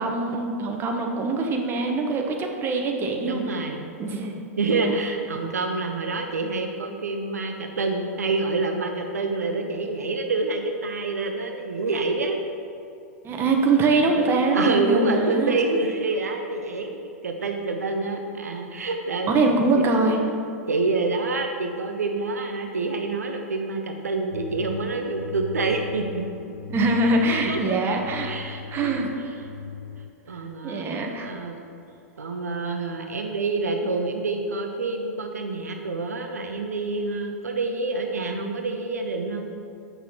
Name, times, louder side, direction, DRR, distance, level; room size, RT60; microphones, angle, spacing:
voice 1, 0.0-3.6 4.0-5.0 13.2-15.6 19.3-20.2 26.7-28.4 28.7-29.1 30.6-31.3, right 3 dB, 25° right, 2 dB, 1.1 m, -23 dB
voice 2, 3.2-3.9 4.6-12.4 14.0-14.3 14.5-16.9 17.2-19.3 19.8-20.2 20.7-26.3 27.0-27.2 27.5-27.8 28.2-29.3 30.3-30.8 31.2-31.6 32.2-39.5, right 3 dB, 80° right, 4 dB, 0.7 m, -27 dB
sound 1, 24.3-30.1, left 7 dB, 80° left, 0.4 m, -38 dB
8.0 x 6.2 x 4.4 m, 2.6 s
figure-of-eight pair, 100°, 8 cm